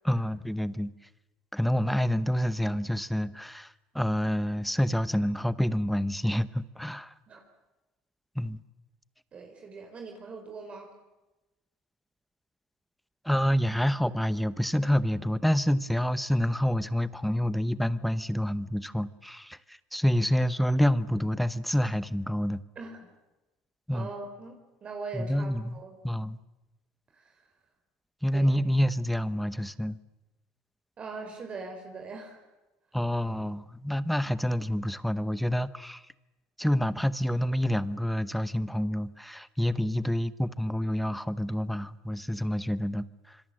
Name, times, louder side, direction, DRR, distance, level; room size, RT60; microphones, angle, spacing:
voice 1, 0.0-0.9 1.5-7.1 8.3-8.6 13.2-22.6 23.9-24.1 25.1-26.4 28.2-30.0 32.9-36.1 36.6-43.4, equal, ahead, 15 dB, 0.9 m, -28 dB
voice 2, 9.3-10.9 22.8-23.1 23.9-26.0 27.1-27.4 28.3-28.5 31.0-32.4, right 4 dB, 35° right, 3 dB, 4.0 m, -41 dB
26.0 x 25.0 x 7.7 m, 1.1 s
cardioid pair, 125°, 4 cm